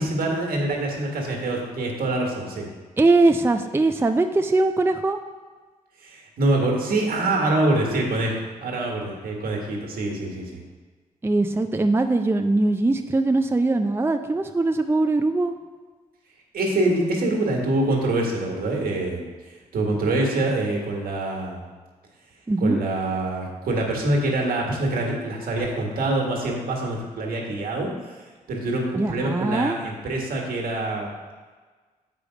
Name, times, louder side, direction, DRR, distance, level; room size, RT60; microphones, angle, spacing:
voice 1, 0.0-2.7 6.0-10.6 16.5-19.2 19.7-21.6 22.6-28.2 28.5-31.1, right 2 dB, 75° right, 0 dB, 1.6 m, -25 dB
voice 2, 3.0-5.2 11.2-15.5 22.5-22.8 28.9-29.8, right 2 dB, 15° right, 6 dB, 0.5 m, -21 dB
6.9 x 5.1 x 5.0 m, 1.4 s
supercardioid pair, 55°, 15 cm